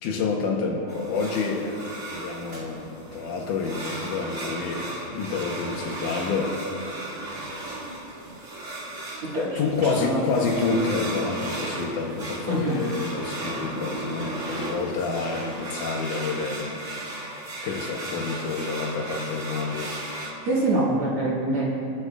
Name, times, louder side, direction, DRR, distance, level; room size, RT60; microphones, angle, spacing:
voice 1, 0.0-6.6 9.6-16.8 17.6-19.9, left 4 dB, 75° left, 2 dB, 2.3 m, -28 dB
sound 1, 0.9-20.3, right 1 dB, 25° right, 1.9 m, -35 dB
voice 2, 9.3-10.2 12.5-12.8 20.5-21.7, right 1 dB, 45° right, -6 dB, 2.3 m, -25 dB
26.5 x 9.7 x 2.4 m, 2.5 s
omnidirectional pair, 3.9 m